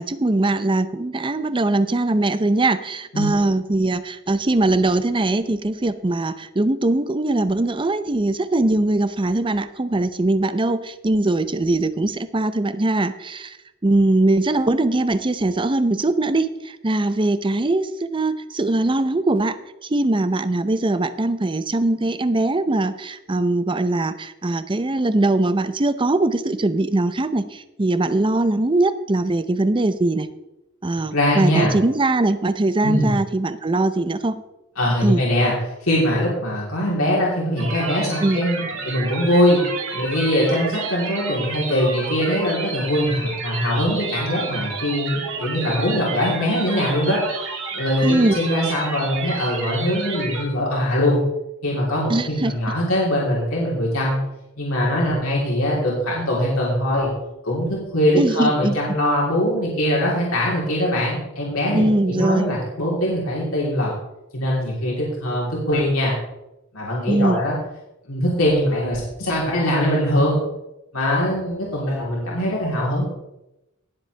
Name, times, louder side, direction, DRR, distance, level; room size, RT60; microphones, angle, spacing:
voice 1, 0.0-13.6 13.8-19.6 19.8-30.3 30.8-34.4 35.0-35.2 38.2-38.5 48.0-48.4 52.1-52.5 58.2-58.8 61.7-62.5 67.1-67.4, right 2 dB, 25° right, 12 dB, 0.6 m, -21 dB
voice 2, 31.1-31.7 32.8-33.1 34.8-35.5 35.8-39.6 39.9-47.2 47.7-51.2 51.6-54.2 54.6-57.1 57.4-63.9 64.3-66.2 66.7-67.6 68.1-70.4 70.9-73.0, equal, 80° left, -5 dB, 3.3 m, -22 dB
sound 1, 37.6-50.4, right 4 dB, 65° right, 2.5 m, -31 dB
18.5 x 7.5 x 3.4 m, 0.91 s
head